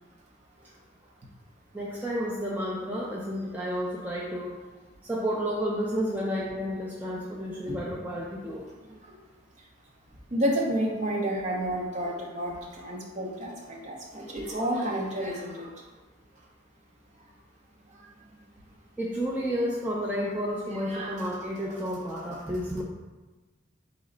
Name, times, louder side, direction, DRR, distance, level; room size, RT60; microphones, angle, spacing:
voice 1, 1.7-4.6 5.0-8.6 19.0-22.8, equal, 10° right, -5 dB, 0.4 m, -31 dB
voice 2, 10.3-15.8 17.9-18.1 20.3-20.4 20.9-21.4 21.7-21.8, right 1 dB, 35° right, -1 dB, 0.7 m, -31 dB
4.1 x 3.0 x 3.8 m, 1.2 s
head